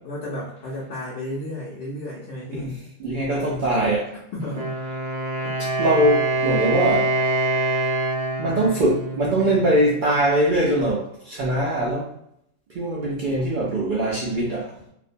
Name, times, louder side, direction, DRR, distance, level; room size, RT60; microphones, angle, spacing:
voice 1, 0.0-2.8 4.3-4.8 5.4-5.5, left 1 dB, 65° left, -5 dB, 0.7 m, -33 dB
voice 2, 2.5-4.1 5.6-7.1 8.4-12.1 12.7-14.7, right 1 dB, 80° right, -4 dB, 0.4 m, -22 dB
Wind instrument woodwind instrument, 4.4-10.2, right 2 dB, 60° right, 0.8 m, -25 dB
2.5 x 2.1 x 2.5 m, 0.74 s
omnidirectional pair, 1.4 m